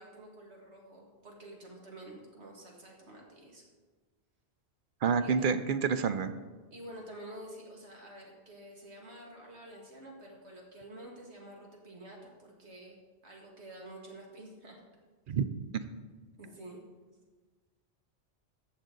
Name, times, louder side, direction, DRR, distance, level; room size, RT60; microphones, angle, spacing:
voice 1, 0.0-3.6 5.2-5.3 6.7-13.0 13.2-14.8 16.4-16.8, right 1 dB, 80° right, -1 dB, 2.2 m, -49 dB
voice 2, 5.0-6.3 15.3-15.4, right 6 dB, 60° right, 10 dB, 0.7 m, -28 dB
13.5 x 7.2 x 3.9 m, 1.3 s
omnidirectional pair, 1.1 m